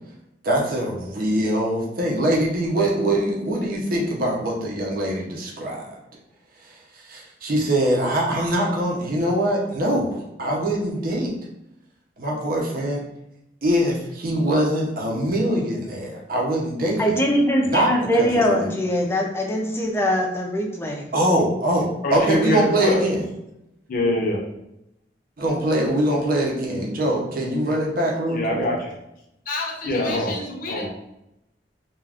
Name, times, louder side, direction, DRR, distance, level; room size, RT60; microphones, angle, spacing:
voice 1, 0.4-5.9 6.9-11.3 12.2-13.0 13.6-17.2 17.6-17.9 18.2-18.7 21.1-23.3 25.4-28.7, right 1 dB, 50° right, -2 dB, 0.7 m, -23 dB
voice 2, 17.0-21.0, equal, 15° left, 0 dB, 0.5 m, -22 dB
voice 3, 22.0-23.0 23.9-24.4 28.3-28.9 29.5-30.9, left 1 dB, 50° left, -1 dB, 0.6 m, -24 dB
2.4 x 2.3 x 3.4 m, 0.85 s
head